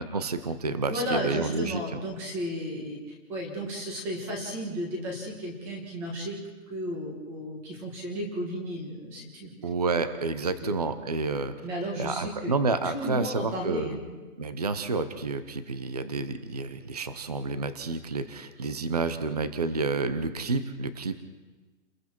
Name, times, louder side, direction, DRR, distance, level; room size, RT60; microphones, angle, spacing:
voice 1, 0.0-1.8 9.6-11.5 12.0-14.0 14.4-21.2, right 3 dB, 30° right, 11 dB, 0.7 m, -29 dB
voice 2, 0.9-3.0 3.3-6.4 6.7-9.5 10.6-10.8 11.6-12.5 12.9-14.0, equal, 5° right, 1 dB, 1.3 m, -33 dB
29.5 x 21.5 x 4.5 m, 1.3 s
hypercardioid pair, 180°, 42 cm